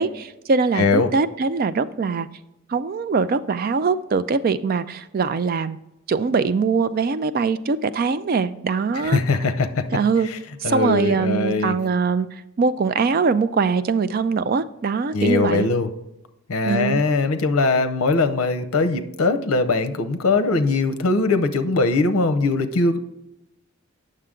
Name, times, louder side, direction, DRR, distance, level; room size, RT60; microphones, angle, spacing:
voice 1, 0.0-2.3 2.7-5.8 6.1-9.2 9.9-10.3 10.6-12.3 12.6-15.7 16.7-17.0, right 4 dB, 40° right, 13 dB, 0.3 m, -22 dB
voice 2, 0.7-1.1 9.0-9.9 10.2-10.4 10.6-11.8 15.1-15.9 16.5-23.0, left 3 dB, 75° left, 10 dB, 0.7 m, -21 dB
8.9 x 6.6 x 3.7 m, 0.89 s
head